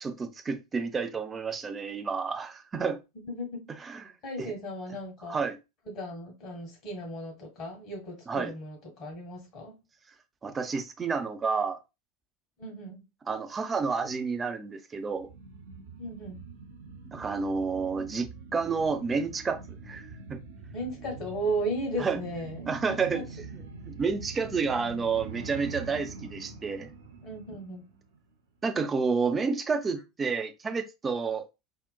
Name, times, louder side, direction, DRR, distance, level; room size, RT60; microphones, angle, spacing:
voice 1, 0.0-3.0 3.7-4.0 4.4-4.5 5.3-5.6 8.3-8.5 10.4-11.8 13.3-15.3 17.1-19.6 19.9-20.4 22.0-22.2 22.7-23.2 23.9-26.9 28.6-31.4, right 5 dB, 20° right, 0.5 m, -30 dB
voice 2, 3.1-3.6 4.2-5.4 5.8-9.7 12.6-13.0 16.0-16.4 20.7-23.4 27.2-27.9, right 1 dB, 40° left, 1.3 m, -36 dB
sound 1, 15.1-28.3 28.7-28.8, right 4 dB, 70° right, 0.6 m, -44 dB
3.7 x 2.1 x 2.2 m
figure-of-eight pair, 80°, 0 cm